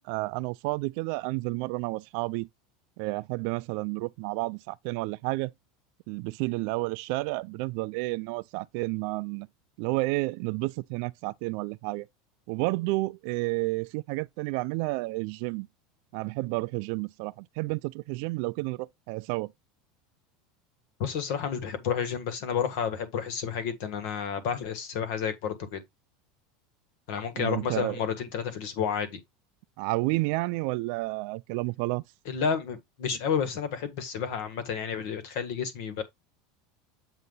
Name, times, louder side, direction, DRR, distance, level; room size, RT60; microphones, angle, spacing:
voice 1, 0.0-2.5 3.0-5.5 6.1-9.5 9.8-12.1 12.5-15.7 16.1-19.5 27.3-28.0 29.8-32.0, right 23 dB, 50° right, 0.3 m, -31 dB
voice 2, 21.0-25.8 27.1-29.2 32.2-36.0, left 7 dB, 50° left, 1.5 m, -31 dB
8.0 x 2.8 x 5.4 m
supercardioid pair, 180°, 0 cm